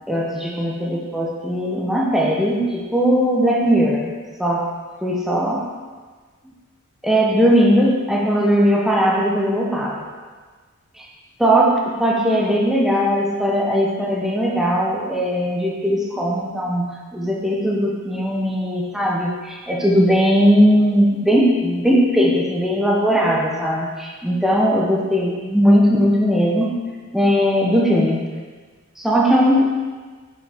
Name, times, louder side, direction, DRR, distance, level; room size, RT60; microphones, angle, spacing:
voice 1, 0.1-4.1 4.4-4.7 5.0-5.7 6.4-6.5 7.0-10.0 10.9-11.0 11.4-26.7 27.1-28.3 29.0-29.7, equal, ahead, -3 dB, 0.6 m, -18 dB
6.5 x 4.6 x 3.5 m, 1.5 s
head